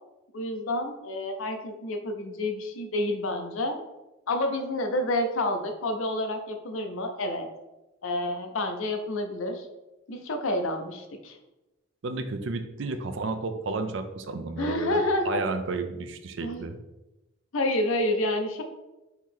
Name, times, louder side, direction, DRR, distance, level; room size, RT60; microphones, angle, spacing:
voice 1, 0.3-3.8 4.3-7.5 8.0-9.7 10.1-11.4 14.6-15.4 16.4-16.7 17.5-18.6, left 1 dB, 75° left, 5 dB, 0.6 m, -29 dB
voice 2, 12.0-16.8, right 3 dB, 60° right, 7 dB, 0.4 m, -32 dB
4.6 x 2.8 x 3.7 m, 1.0 s
head